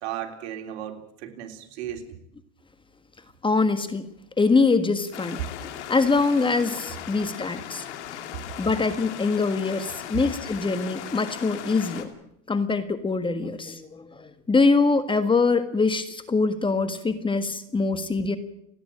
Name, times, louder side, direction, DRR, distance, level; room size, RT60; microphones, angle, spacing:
voice 1, 0.0-2.1, right 10 dB, 70° right, 4 dB, 3.4 m, -35 dB
voice 2, 3.4-4.1 4.4-5.4 5.9-7.8 8.6-12.1 12.5-18.4, left 4 dB, 15° left, 10 dB, 1.6 m, -23 dB
sound 1, 5.1-12.0, left 11 dB, 90° left, 2.6 m, -38 dB
30.0 x 10.0 x 8.8 m, 0.78 s
supercardioid pair, 115°, 34 cm